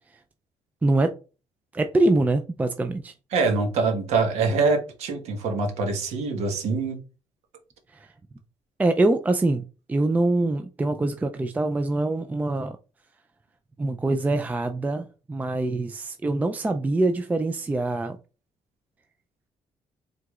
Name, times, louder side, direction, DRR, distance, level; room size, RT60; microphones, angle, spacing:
voice 1, 0.8-1.1 1.7-3.1 7.9-8.1 8.8-9.6 9.9-12.8 13.8-18.2, right 2 dB, 15° right, 0.3 m, -24 dB
voice 2, 3.3-7.0, right 4 dB, 85° right, 1.3 m, -24 dB
4.8 x 3.7 x 2.4 m
cardioid pair, 110°, 11 cm